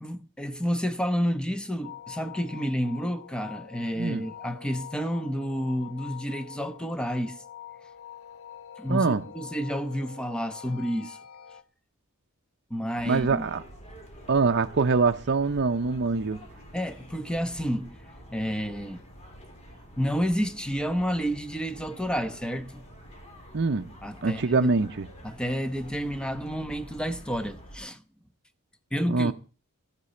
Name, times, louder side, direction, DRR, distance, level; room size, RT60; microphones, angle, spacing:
voice 1, 0.0-7.4 8.8-11.2 12.7-13.4 16.7-18.0 18.3-19.0 20.0-22.8 24.0-24.7 25.2-28.0 28.9-29.3, equal, 5° left, 1.0 m, -30 dB
sound 1, 1.8-11.6, left 9 dB, 80° left, 1.3 m, -45 dB
voice 2, 8.9-9.2 13.0-13.6 14.3-16.4 23.5-23.9 24.2-25.1 29.1-29.3, right 4 dB, 50° right, 0.6 m, -24 dB
sound 2, 13.0-27.8, equal, 30° left, 3.3 m, -48 dB
14.5 x 12.0 x 4.4 m
head